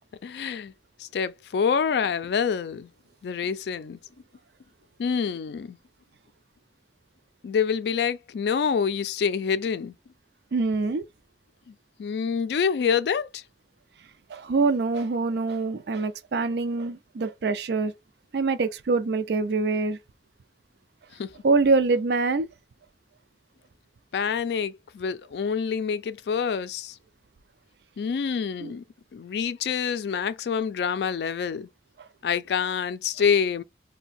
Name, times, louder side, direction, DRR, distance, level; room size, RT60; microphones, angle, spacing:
voice 1, 0.2-0.7 1.0-2.9 3.2-4.0 5.0-5.8 7.4-9.9 12.0-13.4 21.2-21.3 24.1-27.0 28.0-28.8 29.1-31.7 32.2-33.6, left 6 dB, 75° left, 0.3 m, -26 dB
voice 2, 10.5-11.1 14.3-17.9 18.3-20.0 21.4-22.5 28.6-28.7, right 3 dB, 75° right, 0.4 m, -24 dB
2.6 x 2.1 x 4.0 m
head